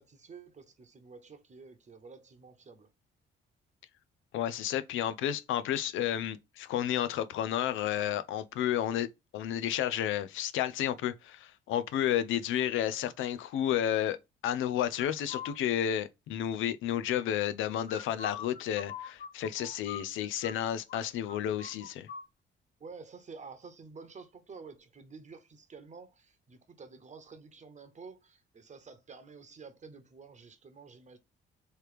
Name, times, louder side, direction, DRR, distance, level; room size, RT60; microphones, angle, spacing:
voice 1, 0.0-2.9 22.8-31.2, right 4 dB, 35° right, 1.0 m, -50 dB
voice 2, 4.3-9.1 9.3-14.2 14.4-22.1, left 10 dB, 80° left, 0.5 m, -31 dB
sound 1, 15.0-15.5 17.8-20.6 20.9-21.0 21.3-22.3, left 7 dB, 45° left, 0.9 m, -42 dB
3.3 x 3.1 x 4.7 m
cardioid pair, 90°, 20 cm